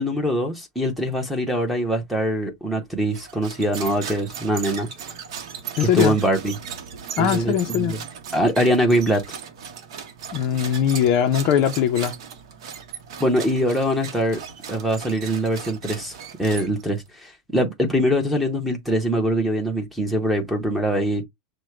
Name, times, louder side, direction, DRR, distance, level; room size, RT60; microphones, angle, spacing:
voice 1, 0.0-4.9 5.8-6.5 7.2-8.0 8.3-9.2 13.2-14.4 14.7-16.1 16.4-21.2, equal, ahead, 0.8 m, -23 dB
sound 1, 3.1-17.1, right 7 dB, 60° right, 0.9 m, -37 dB
voice 2, 5.8-6.2 7.2-7.9 10.3-12.1, left 9 dB, 30° left, 0.5 m, -20 dB
6.2 x 2.1 x 3.1 m
supercardioid pair, 175°, 3 cm